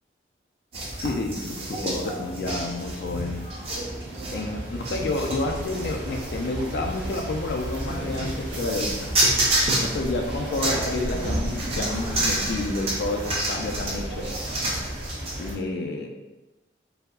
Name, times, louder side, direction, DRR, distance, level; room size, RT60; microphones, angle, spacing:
sound 1, 0.7-15.5, right 1 dB, 30° right, 0.4 m, -29 dB
voice 1, 1.0-3.5 4.3-9.2 9.8-14.3 15.4-16.1, left 2 dB, 60° left, 2 dB, 0.3 m, -30 dB
sound 2, 1.7-15.6, equal, 80° right, 0.5 m, -37 dB
2.7 x 2.3 x 2.2 m, 1.1 s
head